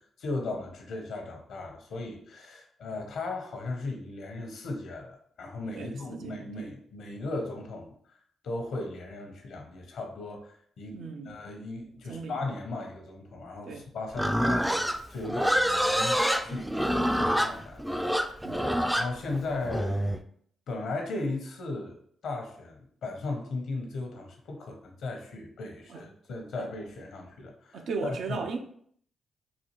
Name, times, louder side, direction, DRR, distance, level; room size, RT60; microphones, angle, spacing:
voice 1, 0.0-8.2 8.4-11.0 11.2-18.5 18.9-20.2 20.7-21.9 22.2-28.4, left 2 dB, 75° left, 0.7 m, -37 dB
voice 2, 5.7-6.7 10.9-11.3 12.1-12.4 13.6-13.8 18.4-18.7 25.9-26.0 26.6-26.7 27.7-28.6, right 4 dB, 70° right, 0.5 m, -37 dB
Livestock farm animals working animals, 14.1-20.2, equal, 5° right, 0.3 m, -27 dB
4.1 x 2.3 x 2.9 m
supercardioid pair, 45°, 0 cm